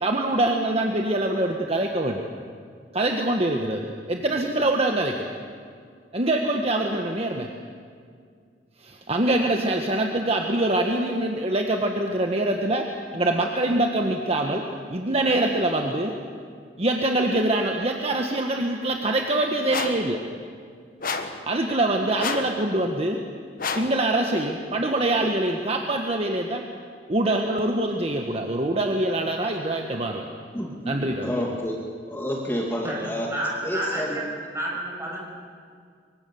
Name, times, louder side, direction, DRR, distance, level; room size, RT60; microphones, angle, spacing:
voice 1, 0.0-2.3 2.9-5.3 6.1-7.5 8.8-12.8 13.1-14.6 14.9-16.1 16.8-20.2 21.5-23.2 23.7-26.6 27.1-30.3 30.9-31.4, right 1 dB, 35° right, 2 dB, 1.5 m, -24 dB
sound 1, 19.7-20.1 21.0-21.4 22.2-22.6 23.6-24.0, left 4 dB, 55° left, 1.7 m, -29 dB
voice 2, 30.5-31.8 32.1-33.3 33.6-34.2, equal, 15° left, -2 dB, 2.5 m, -29 dB
voice 3, 32.8-35.2, right 1 dB, 15° right, -3 dB, 7.2 m, -30 dB
24.5 x 24.0 x 7.0 m, 2.1 s
head